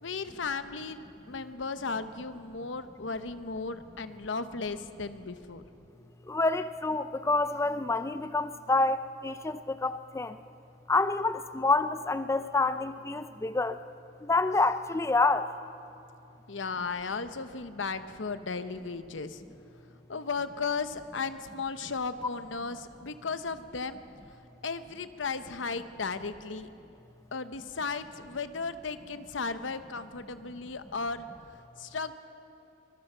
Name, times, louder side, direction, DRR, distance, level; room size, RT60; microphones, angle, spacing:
voice 1, 0.0-5.6 16.5-19.4 20.1-24.0 24.6-26.7 27.3-31.3 31.8-32.1, left 4 dB, 80° left, 11 dB, 0.9 m, -35 dB
voice 2, 6.3-10.4 10.9-13.8 14.2-15.5, left 3 dB, 15° left, 12 dB, 0.4 m, -27 dB
24.0 x 20.5 x 5.6 m, 2.8 s
head